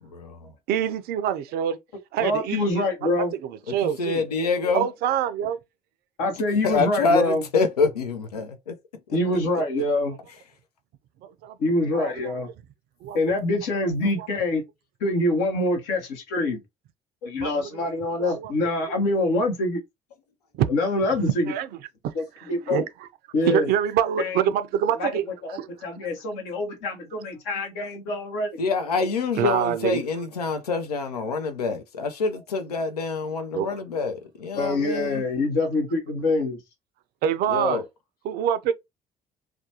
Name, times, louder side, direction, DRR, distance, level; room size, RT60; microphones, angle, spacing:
voice 1, 0.1-0.5 3.7-4.9 6.6-8.8 9.1-9.2 28.6-35.2 37.5-37.8, left 4 dB, 85° left, 0.4 m, -26 dB
voice 2, 0.7-1.8 2.1-3.1 3.4-4.2 4.7-5.6 11.2-12.3 13.0-13.2 14.2-14.3 17.4-17.7 18.2-18.5 20.5-20.7 21.2-23.1 23.4-25.8 29.4-30.0 33.5-33.7 37.2-37.8 38.2-38.7, right 9 dB, 55° right, 0.4 m, -26 dB
voice 3, 2.2-3.3 6.2-7.4 9.1-10.2 11.6-12.5 13.1-14.6 15.0-16.6 17.2-19.8 20.7-21.5 22.1-22.8 23.3-23.7 24.2-24.4 25.0-25.1 25.4-28.6 34.6-36.6, left 2 dB, 65° left, 0.9 m, -25 dB
2.4 x 2.2 x 2.7 m
figure-of-eight pair, 50°, 19 cm